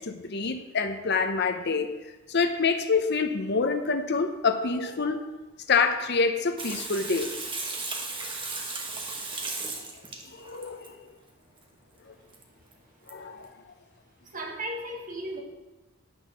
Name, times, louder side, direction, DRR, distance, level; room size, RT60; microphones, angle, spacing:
voice 1, 0.0-1.9 2.3-5.3 5.7-7.3 10.3-11.0 13.1-13.5, left 4 dB, 55° left, 7 dB, 0.8 m, -26 dB
Water tap faucet / Sink (filling or washing), 6.6-10.9 12.3-12.4 12.7-12.8 13.1-13.2, right 3 dB, 25° right, 1.3 m, -35 dB
voice 2, 14.3-15.4, right 1 dB, 40° right, 1 dB, 1.7 m, -35 dB
10.0 x 6.3 x 6.2 m, 1.1 s
head